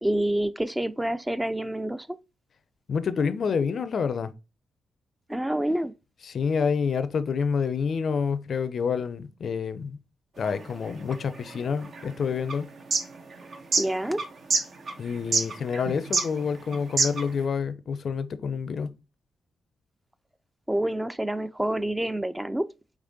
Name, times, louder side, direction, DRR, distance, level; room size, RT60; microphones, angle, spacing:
voice 1, 0.0-2.2 5.3-5.9 13.8-14.2 20.7-22.7, right 1 dB, 10° right, 0.4 m, -27 dB
voice 2, 2.9-4.3 6.2-10.0 10.4-12.7 15.0-18.9, left 6 dB, 60° left, 0.4 m, -28 dB
sound 1, 10.4-17.4, right 3 dB, 60° right, 0.8 m, -29 dB
4.9 x 3.3 x 2.6 m
hypercardioid pair, 40°, 0 cm